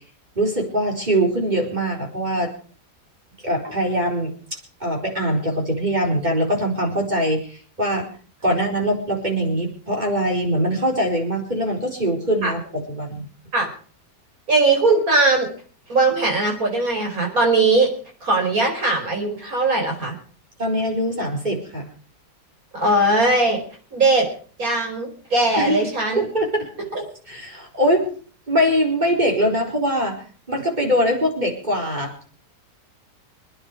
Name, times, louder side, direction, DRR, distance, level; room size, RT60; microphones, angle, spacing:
voice 1, 0.4-2.5 3.4-4.3 4.8-8.1 8.4-13.2 20.6-21.9 25.6-25.8 26.1-26.7 27.3-28.1 28.5-32.2, equal, 25° right, 1 dB, 4.7 m, -22 dB
voice 2, 14.5-15.5 15.9-17.9 18.2-20.2 22.7-23.6 23.9-24.3 24.6-26.2 27.0-27.1, right 2 dB, 55° right, 2 dB, 5.2 m, -19 dB
26.0 x 10.0 x 4.8 m, 0.42 s
omnidirectional pair, 1.8 m